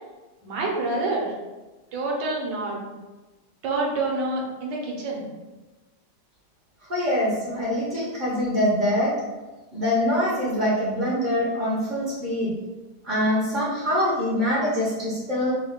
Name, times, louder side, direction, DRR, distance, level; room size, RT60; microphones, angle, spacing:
voice 1, 0.4-1.3 1.9-2.8 3.6-5.2, right 2 dB, 75° right, -2 dB, 1.5 m, -27 dB
voice 2, 6.9-9.1 9.7-12.5 13.0-15.5, left 1 dB, 40° right, -7 dB, 0.6 m, -24 dB
4.7 x 2.3 x 3.5 m, 1.2 s
omnidirectional pair, 2.0 m